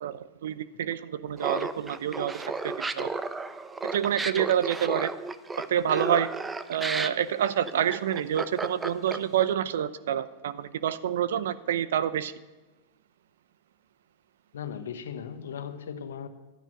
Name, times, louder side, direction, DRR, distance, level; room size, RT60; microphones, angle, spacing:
voice 1, 0.0-3.1 3.8-5.1 5.7-6.3 6.7-12.3, right 10 dB, 70° right, 16 dB, 0.7 m, -28 dB
Laughter, 1.4-9.4, right 3 dB, 15° right, 0.9 m, -33 dB
voice 2, 14.5-16.3, left 8 dB, 75° left, 10 dB, 1.1 m, -37 dB
11.5 x 9.8 x 9.1 m, 1.2 s
hypercardioid pair, 95°, 0 cm